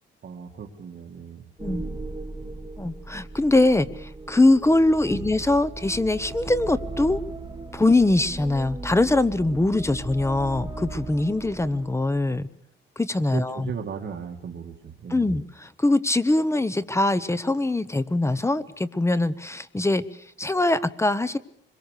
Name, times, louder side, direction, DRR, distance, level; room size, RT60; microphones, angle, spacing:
voice 1, 0.2-2.1 2.4-2.5 5.1-5.2 13.3-15.3, right 6 dB, 60° right, 1 dB, 2.3 m, -37 dB
sound 1, 1.6-12.4, right 2 dB, 20° right, 2.0 m, -37 dB
voice 2, 2.8-7.2 7.7-12.5 13.0-13.7 15.1-20.0 20.4-21.4, left 2 dB, 15° left, 16 dB, 1.1 m, -22 dB
25.0 x 22.5 x 6.7 m, 0.66 s
cardioid pair, 105°, 20 cm